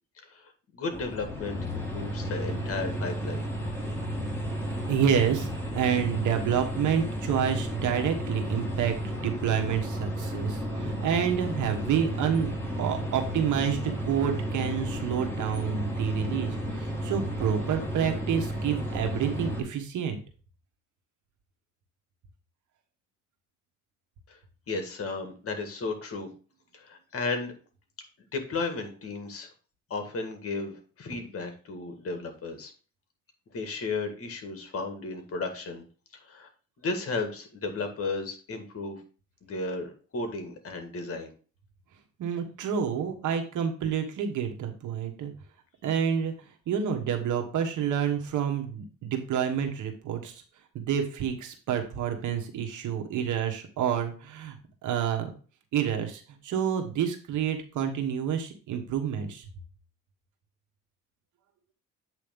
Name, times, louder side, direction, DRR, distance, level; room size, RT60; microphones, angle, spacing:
voice 1, 0.3-3.5 24.3-24.4 24.7-26.3 26.7-27.5 28.3-29.5 29.9-32.7 33.5-35.8 36.2-36.5 36.8-39.0 39.4-41.3, left 3 dB, 50° left, 6 dB, 1.9 m, -34 dB
sound 1, 0.9-19.6, equal, 5° left, 2.3 m, -33 dB
voice 2, 4.9-12.5 12.7-20.2 42.2-45.3 45.8-46.3 46.7-50.4 50.7-54.6 54.8-55.3 55.7-59.4, right 8 dB, 80° right, 5 dB, 1.4 m, -28 dB
8.3 x 3.2 x 5.2 m, 0.38 s
cardioid pair, 90°, 30 cm